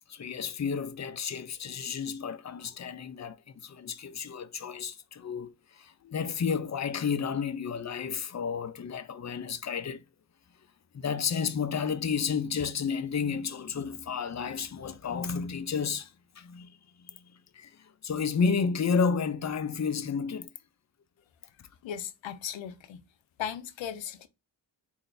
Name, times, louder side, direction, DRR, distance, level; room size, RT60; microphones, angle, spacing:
voice 1, 0.1-10.0 10.9-17.2 17.5-20.5, left 6 dB, 40° left, 0.6 m, -31 dB
voice 2, 21.8-23.0 23.4-24.3, left 9 dB, 85° left, 0.6 m, -37 dB
3.8 x 2.6 x 3.2 m
cardioid pair, 60°, 44 cm